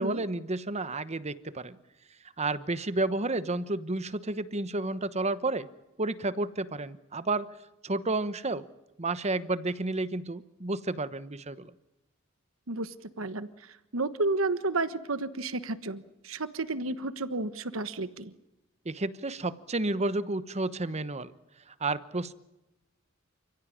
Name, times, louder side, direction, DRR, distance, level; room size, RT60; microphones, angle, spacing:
voice 1, 0.0-1.8 2.4-5.7 6.0-7.5 7.8-8.7 9.0-11.7 18.8-21.3 21.7-22.3, right 2 dB, 35° right, 14 dB, 1.1 m, -31 dB
voice 2, 12.7-13.5 13.9-18.3, right 2 dB, 80° right, 13 dB, 1.3 m, -31 dB
29.0 x 16.5 x 9.9 m, 0.95 s
head